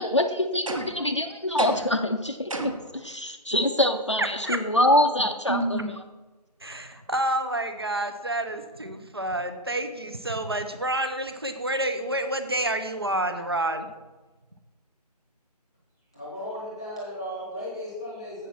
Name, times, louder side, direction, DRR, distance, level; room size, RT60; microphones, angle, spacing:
voice 1, 0.0-5.6, left 1 dB, 45° left, 4 dB, 0.6 m, -24 dB
sound 1, 0.7-1.1 1.6-2.0 2.5-2.9, right 2 dB, 55° right, 1.2 m, -33 dB
voice 2, 4.2-4.6 5.5-5.9 6.6-13.9, right 1 dB, 35° right, 8 dB, 0.6 m, -29 dB
voice 3, 16.1-18.5, equal, 10° left, -6 dB, 1.1 m, -35 dB
8.1 x 5.9 x 5.9 m, 1.2 s
figure-of-eight pair, 180°, 21 cm